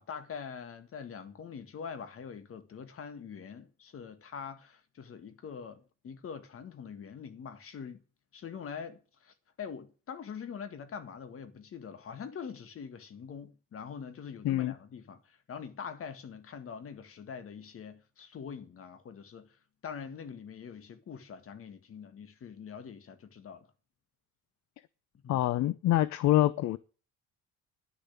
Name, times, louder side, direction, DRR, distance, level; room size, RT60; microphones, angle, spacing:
voice 1, 0.0-8.0 8.3-19.6 19.8-23.7 25.2-25.4, left 6 dB, 45° left, 1.9 m, -44 dB
voice 2, 25.3-26.8, left 14 dB, 65° left, 0.7 m, -26 dB
11.0 x 6.9 x 8.6 m
cardioid pair, 105°, 30 cm